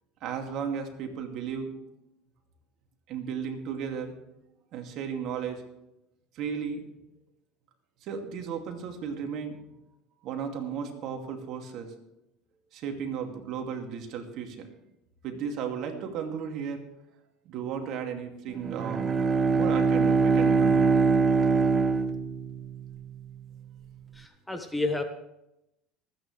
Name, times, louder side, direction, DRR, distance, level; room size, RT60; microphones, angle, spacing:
voice 1, 0.2-1.7 3.1-4.1 4.7-5.6 6.3-6.8 8.0-9.6 10.2-11.9 12.7-14.7 15.2-16.8 17.4-19.1 19.5-20.9, right 7 dB, 55° right, 3 dB, 2.4 m, -34 dB
Bowed string instrument, 18.6-23.0, right 4 dB, 25° right, 1.0 m, -23 dB
voice 2, 24.1-25.0, left 2 dB, 5° left, 6 dB, 1.2 m, -30 dB
25.0 x 9.3 x 3.3 m, 0.88 s
supercardioid pair, 115°, 0 cm